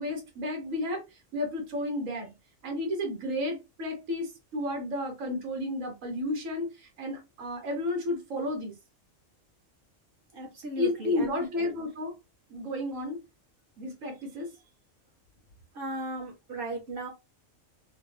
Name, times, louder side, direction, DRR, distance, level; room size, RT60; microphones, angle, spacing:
voice 1, 0.0-2.3 2.6-8.7 10.8-12.1 12.5-13.2 13.8-14.5, left 1 dB, 80° right, 1.4 m, -32 dB
voice 2, 10.3-11.4 15.7-17.1, right 2 dB, 45° right, 1.3 m, -36 dB
3.2 x 2.2 x 3.1 m
omnidirectional pair, 1.3 m